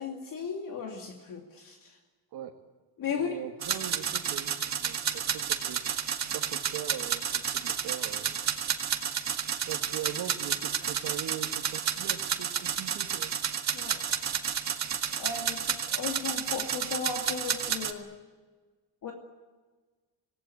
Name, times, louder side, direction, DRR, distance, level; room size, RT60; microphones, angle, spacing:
voice 1, 0.0-2.0 3.0-3.3 13.7-14.0 15.2-18.1 19.0-19.1, left 6 dB, 55° left, 1 dB, 2.6 m, -36 dB
voice 2, 3.1-5.8 6.3-8.3 9.7-13.3 15.1-15.2, right 11 dB, 75° right, 1 dB, 1.9 m, -41 dB
sound 1, 3.6-17.9, right 8 dB, 40° right, 1.9 m, -31 dB
27.0 x 18.0 x 8.6 m, 1.4 s
cardioid pair, 165°, 40 cm